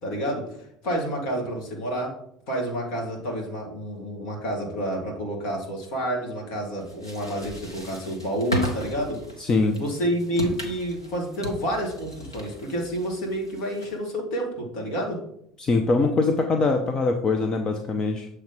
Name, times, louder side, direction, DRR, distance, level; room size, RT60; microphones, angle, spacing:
voice 1, 0.0-0.6 0.8-2.1 2.5-9.2 9.8-15.2, equal, 60° left, 0 dB, 1.9 m, -29 dB
sound 1, 6.8-14.1, right 1 dB, 90° left, 1.0 m, -36 dB
voice 2, 9.4-9.8 15.6-18.3, left 3 dB, 30° left, 5 dB, 0.7 m, -23 dB
7.3 x 3.3 x 5.2 m, 0.72 s
figure-of-eight pair, 70°, 2 cm